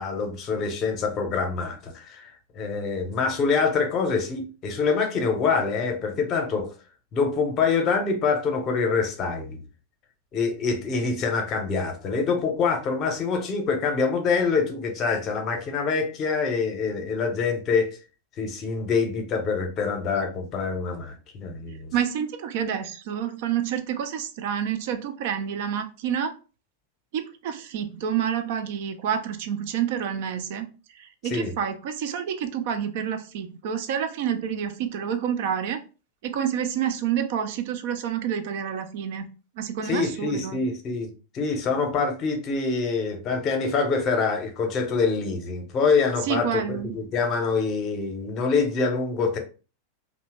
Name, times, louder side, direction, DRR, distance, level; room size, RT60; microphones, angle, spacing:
voice 1, 0.0-6.7 7.1-9.6 10.3-18.0 18.4-21.9 31.3-31.5 39.8-49.4, left 4 dB, 35° left, 0.7 m, -25 dB
voice 2, 21.9-26.3 27.1-30.7 31.0-35.8 36.2-39.3 39.6-40.6 46.2-46.9, right 8 dB, 50° right, 0.3 m, -28 dB
2.7 x 2.1 x 3.1 m
figure-of-eight pair, 90°, 0 cm